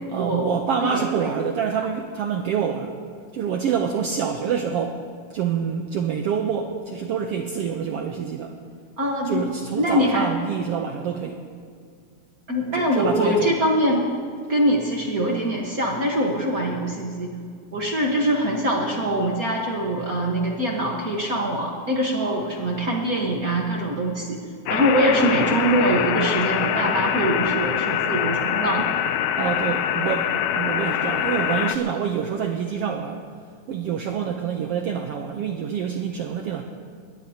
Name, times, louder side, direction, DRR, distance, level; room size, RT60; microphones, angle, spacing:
voice 1, 0.1-2.9 3.3-5.0 5.3-8.5 9.2-11.4 12.7-13.6 29.4-33.2 33.7-36.6, right 7 dB, 90° right, 3 dB, 1.3 m, -26 dB
voice 2, 0.8-1.4 9.0-9.4 9.7-10.3 12.5-14.1 14.5-17.3 17.7-24.4 24.7-28.9, right 1 dB, 55° right, -1 dB, 0.9 m, -23 dB
sound 1, 24.7-31.8, left 10 dB, 80° left, 2.0 m, -24 dB
22.5 x 18.5 x 2.9 m, 2.2 s
omnidirectional pair, 3.7 m